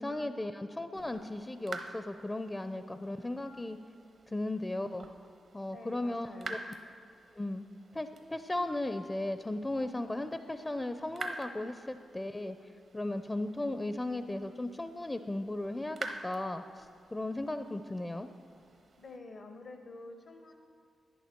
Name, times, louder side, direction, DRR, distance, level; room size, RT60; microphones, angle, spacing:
voice 1, 0.0-3.8 4.3-5.1 5.5-6.6 7.4-7.7 7.9-12.6 12.9-18.3, left 1 dB, 20° left, 10 dB, 0.5 m, -36 dB
sound 1, 0.9-19.2, right 2 dB, 65° right, 1.0 m, -48 dB
voice 2, 5.7-6.7 19.0-20.5, left 2 dB, 70° left, 5 dB, 0.8 m, -48 dB
11.0 x 10.0 x 4.4 m, 2.3 s
supercardioid pair, 45°, 0 cm